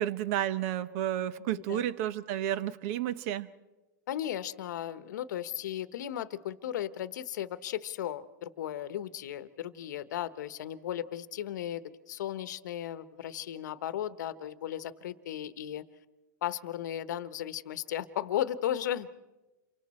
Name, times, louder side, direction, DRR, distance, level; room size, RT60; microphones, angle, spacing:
voice 1, 0.0-3.5, right 11 dB, 50° right, 16 dB, 1.0 m, -31 dB
voice 2, 4.1-15.8 16.4-19.1, left 11 dB, 65° left, 14 dB, 1.0 m, -35 dB
28.5 x 24.5 x 4.3 m, 1.1 s
hypercardioid pair, 130°, 10 cm